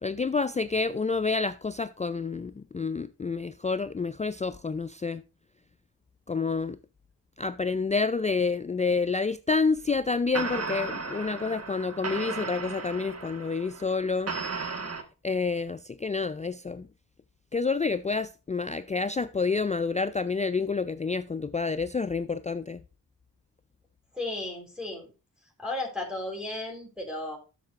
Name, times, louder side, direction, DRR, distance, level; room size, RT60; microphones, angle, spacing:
voice 1, 0.0-5.2 6.3-6.8 7.4-14.3 15.2-16.9 17.5-22.8, left 4 dB, 20° left, 0.4 m, -28 dB
sound 1, 9.8-10.0 10.3-15.0, right 4 dB, 40° right, 1.6 m, -35 dB
voice 2, 24.1-25.1 25.6-27.4, left 2 dB, ahead, 3.7 m, -34 dB
11.0 x 6.7 x 2.5 m
supercardioid pair, 45°, 39 cm